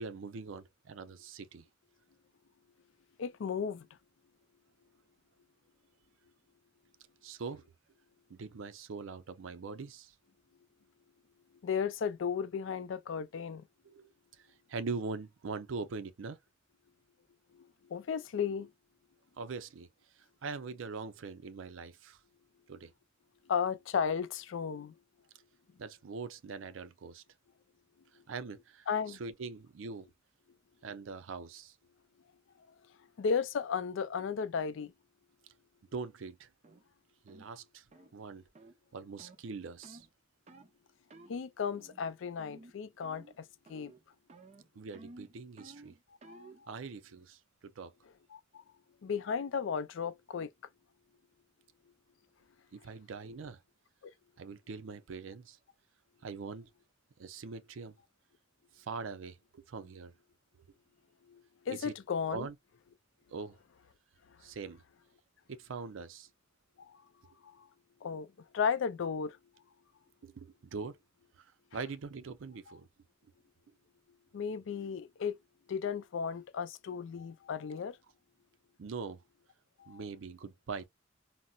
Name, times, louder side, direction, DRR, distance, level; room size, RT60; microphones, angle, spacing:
voice 1, 0.0-1.7 7.2-7.6 8.3-10.1 13.8-16.4 19.4-19.9 20.1-22.2 22.7-22.9 25.8-27.2 28.3-30.1 30.8-31.8 35.9-36.5 37.2-37.9 38.1-38.4 38.9-40.1 44.8-46.0 46.7-47.9 52.7-53.6 54.4-55.6 56.2-56.7 57.2-58.0 58.7-60.1 61.7-61.9 62.3-62.6 63.3-63.6 64.4-64.8 65.5-66.3 70.2-71.0 71.4-72.9 78.8-79.2 79.9-80.9, right 4 dB, 80° right, 0.5 m, -42 dB
voice 2, 3.2-3.9 11.6-13.6 17.5-17.6 17.9-18.7 23.5-24.9 28.9-29.2 33.2-34.9 41.3-43.9 46.2-46.7 48.3-48.4 49.0-50.5 54.0-54.1 61.3-61.4 61.7-62.5 66.8-67.0 67.4-67.7 68.0-68.3 68.5-69.4 72.7-72.8 74.3-75.4 75.7-78.0 79.8-80.0, left 6 dB, 75° left, 0.4 m, -34 dB
sound 1, 36.6-36.8 37.3-37.5 37.9-38.1 38.5-38.8 39.2-39.4 39.8-40.1 40.5-40.7 41.1-41.3 41.7-42.1 42.4-42.7 43.0-43.4 43.7-44.0 44.3-46.6, right 2 dB, 35° right, 0.6 m, -54 dB
4.0 x 2.0 x 2.3 m
head